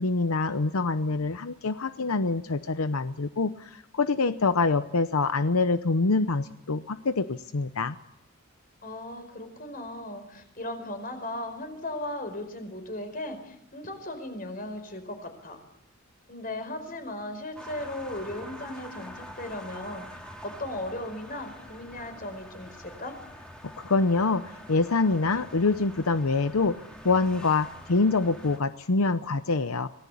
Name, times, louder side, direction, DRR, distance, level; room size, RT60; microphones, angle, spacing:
voice 1, 0.0-7.9 23.8-24.4 24.7-26.7 27.0-29.9, left 3 dB, 85° left, 11 dB, 0.8 m, -25 dB
voice 2, 8.8-15.6 16.3-20.0 20.4-23.1, left 1 dB, 40° left, 8 dB, 4.9 m, -37 dB
sound 1, 17.6-28.6, equal, 5° left, 3.2 m, -46 dB
26.0 x 19.0 x 8.5 m, 0.81 s
head